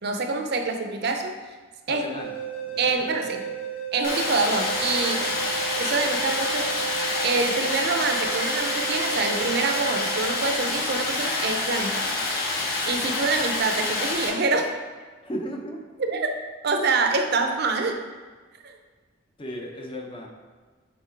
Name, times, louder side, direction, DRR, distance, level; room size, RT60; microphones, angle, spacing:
voice 1, 0.0-1.5 1.9-2.0 2.8-3.4 3.9-5.3 5.8-6.7 7.2-12.1 12.9-14.7 16.0-16.3 16.6-18.0 18.6-18.8, right 3 dB, 55° right, 5 dB, 0.5 m, -26 dB
voice 2, 1.9-2.3 2.6-3.5 15.2-15.8 19.4-20.3, equal, 25° left, 1 dB, 0.7 m, -35 dB
sound 1, 2.2-11.1, right 8 dB, 80° left, 0.6 m, -34 dB
Stream, 4.0-14.3, left 2 dB, 50° left, 1.6 m, -27 dB
5.9 x 3.5 x 4.5 m, 1.4 s
head